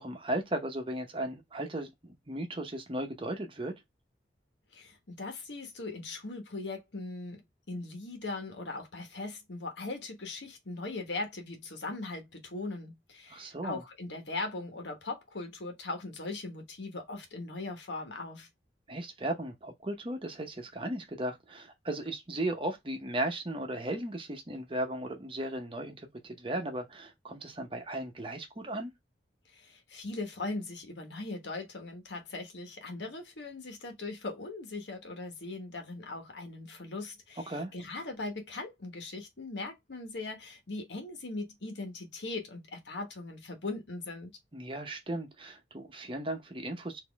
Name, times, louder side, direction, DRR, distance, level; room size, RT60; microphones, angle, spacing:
voice 1, 0.0-3.7 13.3-13.8 18.9-28.9 37.5-37.7 44.5-47.0, right 1 dB, 30° right, 0.8 m, -36 dB
voice 2, 4.7-18.5 29.5-44.3, left 3 dB, 85° left, 1.2 m, -39 dB
4.2 x 2.7 x 3.4 m
head